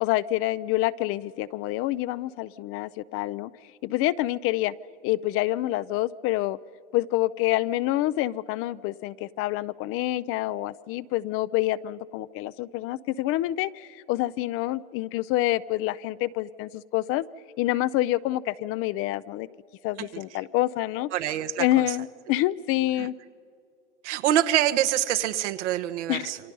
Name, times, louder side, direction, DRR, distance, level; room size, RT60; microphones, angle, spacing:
voice 1, 0.0-3.5 3.8-4.7 5.0-6.6 6.9-17.3 17.6-19.5 19.8-21.1 21.6-23.1 26.1-26.3, left 16 dB, 40° left, 18 dB, 0.5 m, -27 dB
voice 2, 21.1-22.0 23.0-23.1 24.0-26.4, right 12 dB, 80° right, 8 dB, 1.3 m, -25 dB
28.0 x 25.0 x 5.4 m, 2.3 s
supercardioid pair, 120°, 35 cm